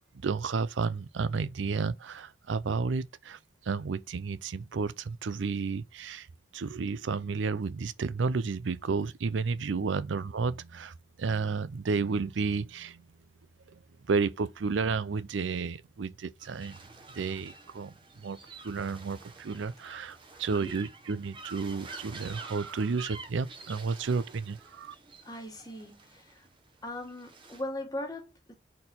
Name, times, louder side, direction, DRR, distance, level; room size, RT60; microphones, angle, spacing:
voice 1, 0.1-6.3 6.5-13.1 13.7-13.8 14.1-16.9 17.1-24.9, right 4 dB, 80° right, 0.5 m, -32 dB
sound 1, 16.4-27.6, right 3 dB, 25° right, 1.1 m, -48 dB
voice 2, 20.5-20.8 25.2-26.5 26.8-28.5, left 1 dB, 20° left, 1.3 m, -39 dB
4.4 x 4.2 x 5.2 m
head